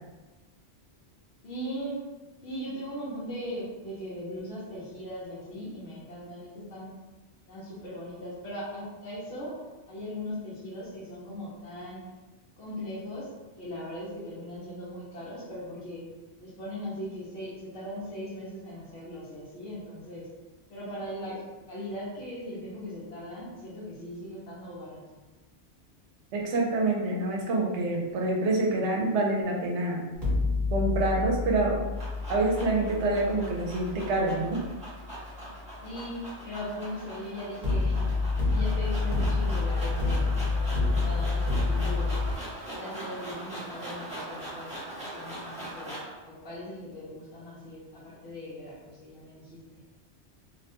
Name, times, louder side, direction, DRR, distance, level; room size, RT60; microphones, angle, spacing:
voice 1, 1.4-2.1 2.4-6.9 7.5-9.6 9.9-12.0 12.6-16.0 16.4-20.3 20.7-21.4 21.7-25.2 35.8-42.1 42.7-49.8, equal, 65° left, -9 dB, 1.0 m, -39 dB
voice 2, 26.3-30.0 30.7-31.8 32.3-34.6, right 2 dB, 75° right, -1 dB, 0.9 m, -26 dB
sound 1, 30.2-35.2 37.6-42.3, left 3 dB, 35° right, 1.0 m, -28 dB
sound 2, 31.7-46.2, right 1 dB, 5° right, 0.7 m, -41 dB
2.6 x 2.1 x 2.8 m, 1.2 s
omnidirectional pair, 1.2 m